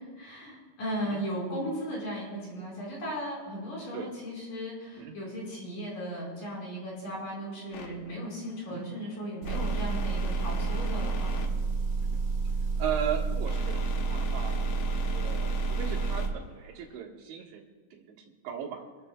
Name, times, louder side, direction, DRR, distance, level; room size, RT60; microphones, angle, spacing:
voice 1, 0.2-11.5, equal, 50° left, -3 dB, 6.1 m, -36 dB
sound 1, 7.7-17.0, left 5 dB, 65° left, 2.3 m, -42 dB
Motor vehicle (road) / Engine, 9.4-16.3, right 4 dB, 65° right, 1.7 m, -29 dB
voice 2, 12.8-17.6 17.9-18.2 18.4-18.8, right 8 dB, 85° right, 0 dB, 3.8 m, -37 dB
26.0 x 14.0 x 2.3 m, 1.4 s
omnidirectional pair, 5.0 m